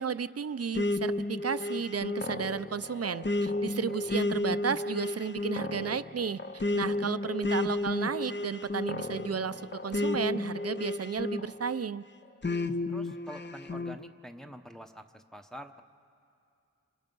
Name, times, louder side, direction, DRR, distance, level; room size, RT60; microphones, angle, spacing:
voice 1, 0.0-12.0, right 6 dB, 55° right, 13 dB, 0.6 m, -33 dB
sound 1, 0.7-11.8 12.4-14.0, left 2 dB, 40° left, 0.8 m, -32 dB
voice 2, 12.9-15.8, equal, ahead, 5 dB, 0.9 m, -46 dB
29.5 x 27.0 x 5.4 m, 2.5 s
wide cardioid pair, 80°, 29 cm